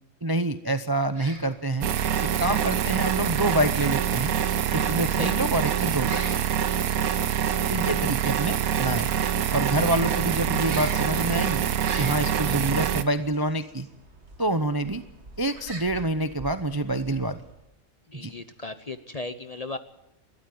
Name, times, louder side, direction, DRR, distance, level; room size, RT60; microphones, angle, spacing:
voice 1, 0.2-1.9 2.4-4.3 4.7-6.2 7.7-9.1 9.5-11.6 12.0-13.9 14.4-15.0 15.4-17.4 18.1-18.3, right 1 dB, 25° right, 10 dB, 0.6 m, -27 dB
sound 1, 1.8-13.0, right 9 dB, 90° right, 1.4 m, -25 dB
voice 2, 4.7-5.6 7.0-7.3 18.1-19.8, left 2 dB, 35° left, 10 dB, 0.8 m, -37 dB
sound 2, 11.8-17.7, right 2 dB, 50° right, 2.6 m, -46 dB
21.0 x 13.5 x 9.5 m, 0.91 s
omnidirectional pair, 1.5 m